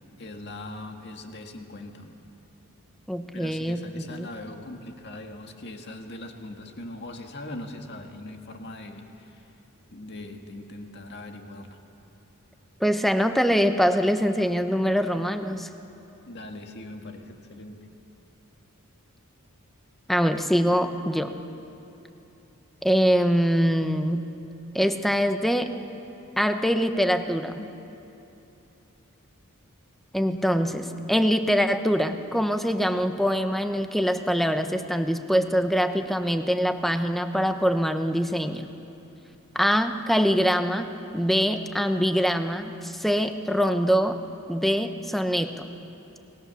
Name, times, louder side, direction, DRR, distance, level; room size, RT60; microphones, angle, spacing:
voice 1, 0.2-2.2 3.3-9.5 9.9-11.8 16.3-17.9 27.6-27.7, left 1 dB, 50° left, 3 dB, 2.0 m, -40 dB
voice 2, 3.1-3.8 4.1-4.3 12.8-15.7 20.1-21.3 22.8-24.3 24.7-25.7 26.4-27.6 30.1-38.7 39.5-40.9 41.1-44.2 44.5-45.7, equal, ahead, 7 dB, 0.9 m, -24 dB
29.5 x 19.5 x 7.1 m, 2.9 s
head